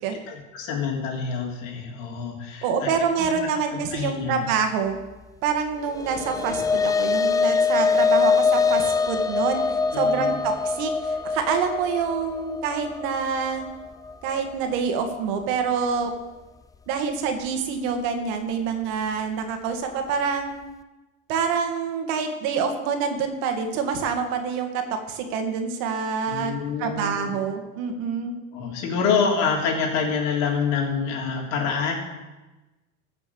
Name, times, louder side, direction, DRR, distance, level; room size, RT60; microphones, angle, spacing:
voice 1, 0.3-2.9 3.2-4.4 9.9-10.4 26.3-27.4 28.5-31.9, left 5 dB, 70° left, 0 dB, 3.3 m, -27 dB
voice 2, 2.6-5.0 5.4-9.6 9.9-13.6 14.2-16.1 16.9-20.5 21.3-24.8 25.1-26.5 26.8-28.3, right 6 dB, 70° right, 5 dB, 2.1 m, -26 dB
sound 1, 5.9-14.5, left 5 dB, 10° left, 0.3 m, -23 dB
14.5 x 6.0 x 7.1 m, 1.1 s
supercardioid pair, 115°, 40 cm